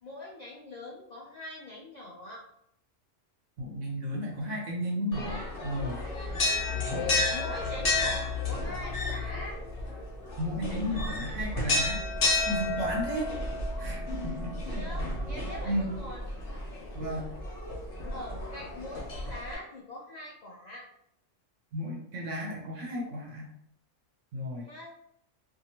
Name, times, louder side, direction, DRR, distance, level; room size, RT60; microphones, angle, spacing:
voice 1, 0.0-2.5 6.1-6.3 7.3-9.6 14.7-16.3 18.1-20.9 24.6-25.0, left 1 dB, 70° left, -3 dB, 0.4 m, -43 dB
voice 2, 3.6-6.0 10.4-12.0 12.5-13.3 13.8-14.8 15.6-15.9 16.9-17.3 21.7-23.5 24.3-24.6, equal, 75° right, -1 dB, 1.0 m, -33 dB
sound 1, 5.1-19.5, left 2 dB, 50° left, 0.9 m, -32 dB
2.7 x 2.4 x 2.8 m, 0.74 s
omnidirectional pair, 1.3 m